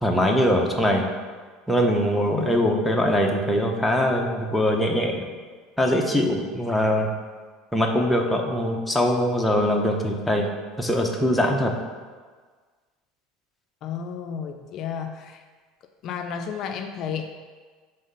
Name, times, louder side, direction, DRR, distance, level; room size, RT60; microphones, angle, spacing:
voice 1, 0.0-1.1 1.7-5.3 5.8-7.1 7.7-10.5 10.8-11.7, equal, ahead, 0 dB, 0.6 m, -22 dB
voice 2, 13.8-15.4 16.0-17.2, left 7 dB, 45° left, 5 dB, 0.4 m, -32 dB
5.5 x 3.2 x 5.4 m, 1.5 s
supercardioid pair, 130°, 0 cm